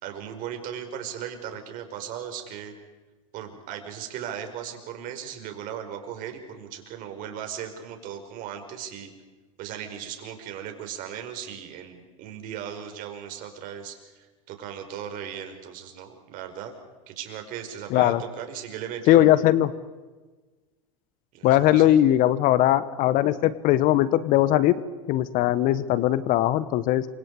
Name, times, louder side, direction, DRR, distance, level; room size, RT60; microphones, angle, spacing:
voice 1, 0.0-2.7 3.3-9.1 9.6-16.7 17.1-19.3 21.3-21.9, right 9 dB, 50° right, 5 dB, 4.9 m, -37 dB
voice 2, 17.9-18.2 19.1-19.7 21.4-24.8 25.1-27.0, left 13 dB, 50° left, 16 dB, 1.3 m, -20 dB
29.0 x 26.0 x 4.9 m, 1.3 s
hypercardioid pair, 100°, 18 cm